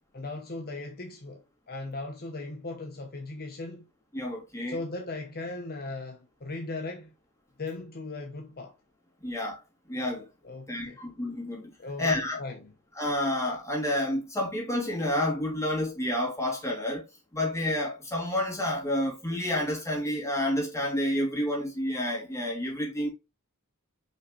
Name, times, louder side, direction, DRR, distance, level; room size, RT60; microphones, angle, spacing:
voice 1, 0.1-3.9 4.7-7.1 7.6-8.7 10.4-11.0 11.8-12.7, left 2 dB, 45° left, 1.0 m, -38 dB
voice 2, 4.1-4.8 9.2-9.6 9.9-10.3 10.7-11.7 12.0-12.4 13.0-17.1 17.3-23.1, left 1 dB, 15° left, 3.0 m, -29 dB
6.1 x 5.6 x 3.2 m
head